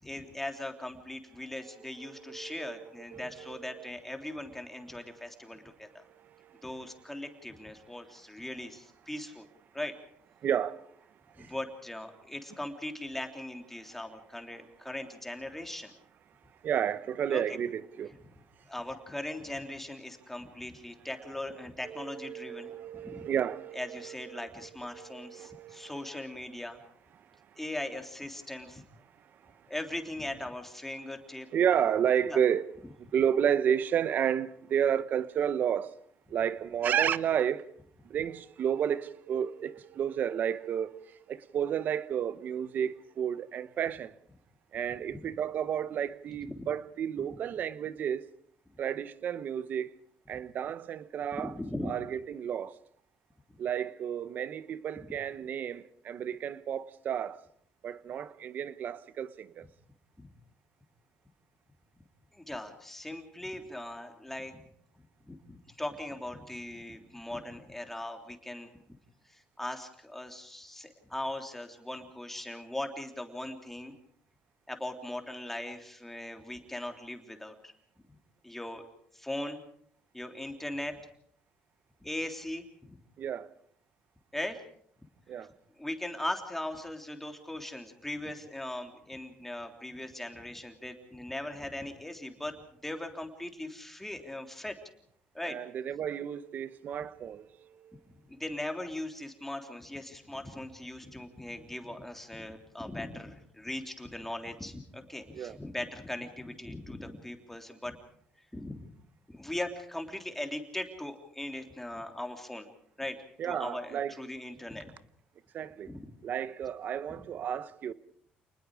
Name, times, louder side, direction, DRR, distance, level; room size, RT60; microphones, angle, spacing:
voice 1, 0.0-6.0 6.6-9.5 9.7-9.9 11.4-15.9 17.3-17.4 18.6-22.7 23.0-23.2 23.7-26.8 27.6-28.9 29.7-31.5 32.2-32.4 45.1-45.2 46.4-46.6 47.2-47.4 51.3-51.9 60.2-60.3 62.3-64.6 64.9-69.0 69.2-73.9 74.7-77.7 78.4-78.8 79.1-79.6 80.1-81.0 82.0-83.0 84.3-84.6 85.4-85.5 85.8-92.5 92.8-94.8 95.3-95.6 98.3-108.0 108.5-108.9 109.3-112.7 113.0-113.2 113.4-114.9 115.9-116.1, left 1 dB, 5° left, 3.2 m, -39 dB
voice 2, 2.0-3.9 6.4-6.6 10.4-10.8 11.4-11.5 16.6-18.1 21.8-26.1 31.5-32.7 33.1-35.9 36.3-37.6 38.1-41.0 41.3-44.1 44.7-48.2 48.8-49.9 50.3-51.5 51.8-52.7 53.6-57.4 57.8-59.7 83.2-83.5 85.3-85.5 95.4-97.5 105.3-105.6 113.4-114.2 115.5-115.9 116.2-117.9, right 9 dB, 55° right, 1.0 m, -31 dB
28.5 x 20.0 x 4.9 m
cardioid pair, 95°, 4 cm